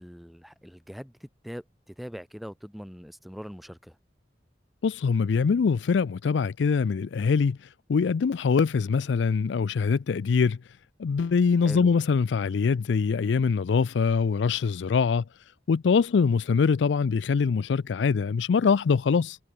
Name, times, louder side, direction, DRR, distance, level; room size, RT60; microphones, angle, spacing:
voice 1, 0.0-4.0 11.6-11.9, equal, ahead, 0.9 m, -42 dB
voice 2, 4.8-7.6 7.9-10.6 11.0-15.2 15.7-19.4, left 5 dB, 80° left, 0.4 m, -23 dB
head